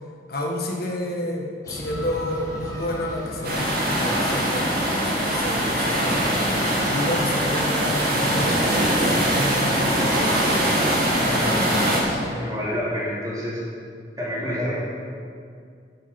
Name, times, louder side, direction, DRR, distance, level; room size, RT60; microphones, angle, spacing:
voice 1, 0.3-6.2 6.6-11.8, left 1 dB, 55° left, 0 dB, 1.7 m, -30 dB
sound 1, 1.6-12.3, left 1 dB, 20° left, 2.2 m, -35 dB
sound 2, 3.4-12.0, equal, 55° right, 2.3 m, -22 dB
voice 2, 12.3-13.6 14.2-14.8, equal, 20° right, -7 dB, 3.2 m, -28 dB
8.9 x 7.3 x 7.3 m, 2.2 s
head